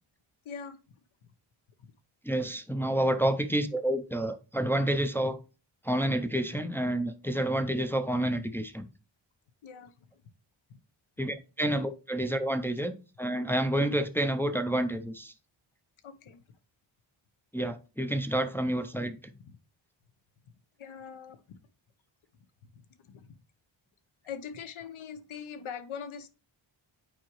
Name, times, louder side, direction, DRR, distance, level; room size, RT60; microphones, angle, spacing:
voice 1, 0.4-0.8 9.6-9.9 10.7-10.8 16.0-16.4 19.5-19.6 20.8-21.4 23.0-23.3 24.2-26.3, left 7 dB, 75° left, 0.9 m, -42 dB
voice 2, 2.2-5.4 5.8-8.9 11.2-15.3 17.5-19.3, right 1 dB, 5° left, 0.4 m, -29 dB
8.9 x 4.7 x 3.0 m
wide cardioid pair, 145°, 49 cm